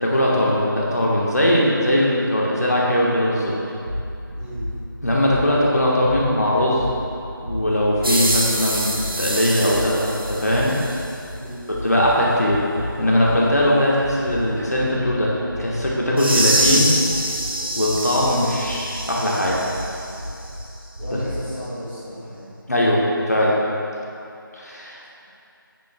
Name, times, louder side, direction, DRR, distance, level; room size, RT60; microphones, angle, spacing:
voice 1, 0.0-3.5 5.0-6.9 7.4-10.7 11.8-12.6 13.0-15.3 15.6-16.9 17.7-19.6 22.7-23.6 24.5-25.0, left 1 dB, 50° left, -5 dB, 1.4 m, -20 dB
sound 1, 3.8-11.5 11.7-16.0 16.3-19.1 19.4-21.5, left 1 dB, 20° right, 1.0 m, -33 dB
voice 2, 4.3-4.7 11.3-11.7 21.0-22.5, equal, 5° right, -21 dB, 1.5 m, -34 dB
sound 2, 8.0-11.1 16.2-20.2, right 1 dB, 75° right, 1.1 m, -25 dB
10.5 x 9.1 x 2.3 m, 2.7 s
figure-of-eight pair, 170°, 12 cm